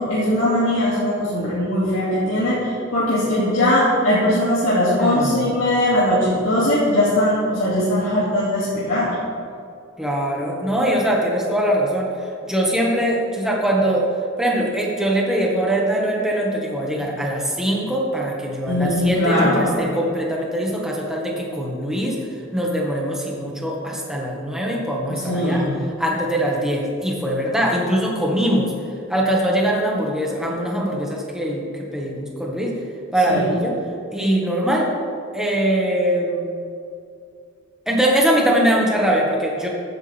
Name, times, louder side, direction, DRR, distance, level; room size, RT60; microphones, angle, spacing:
voice 1, 0.0-9.1 18.7-19.7 25.1-25.7 33.3-33.4, left 1 dB, 85° left, -10 dB, 2.7 m, -20 dB
voice 2, 5.0-5.5 10.0-12.1 12.4-14.1 14.4-22.2 22.5-25.6 26.0-28.7 29.1-32.7 33.1-33.8 34.1-34.9 35.3-36.5 37.9-39.7, right 1 dB, 5° right, -2 dB, 1.7 m, -22 dB
14.5 x 9.7 x 3.6 m, 2.4 s
head